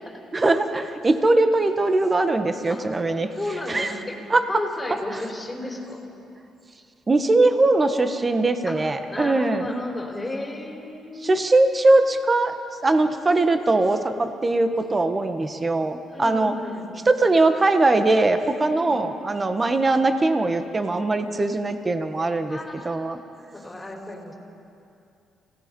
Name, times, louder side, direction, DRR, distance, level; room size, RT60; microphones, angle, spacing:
voice 1, 0.3-4.0 4.3-4.6 4.9-5.3 7.1-9.7 11.2-12.5 12.8-16.6 17.0-23.2, right 2 dB, 25° right, 8 dB, 1.4 m, -21 dB
voice 2, 3.4-4.2 4.5-6.0 8.7-8.8 9.1-11.5 16.1-16.9 18.8-19.0 19.6-19.7 22.5-23.2 23.5-24.3, left 2 dB, 15° left, 1 dB, 4.5 m, -33 dB
29.5 x 17.5 x 5.4 m, 2.6 s
cardioid pair, 90°, 0 cm